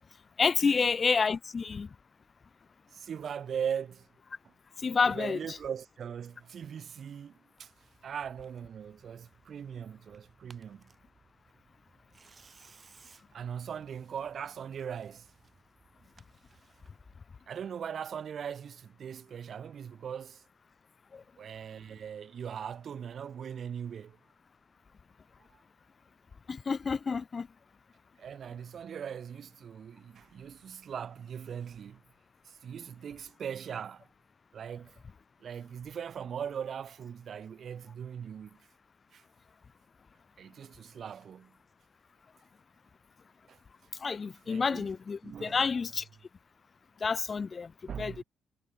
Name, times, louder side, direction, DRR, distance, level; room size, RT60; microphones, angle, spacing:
voice 1, 0.4-1.9 4.8-5.6 26.5-27.5 44.0-46.0 47.0-47.7 48.0-48.2, left 5 dB, 35° left, 0.8 m, -29 dB
voice 2, 2.9-4.1 4.4-4.5 5.0-7.7 8.0-10.9 13.3-15.3 17.5-20.4 21.4-24.2 25.5-25.6 28.2-32.0 32.5-34.1 34.5-35.0 35.4-38.6 39.1-39.2 40.4-41.6 43.5-43.6 44.5-44.9 45.2-45.6 47.9-48.2, right 8 dB, 55° right, 5.5 m, -40 dB
Tearing, 7.6-17.2, right 5 dB, 35° right, 7.8 m, -62 dB
cardioid pair, 90°, 0 cm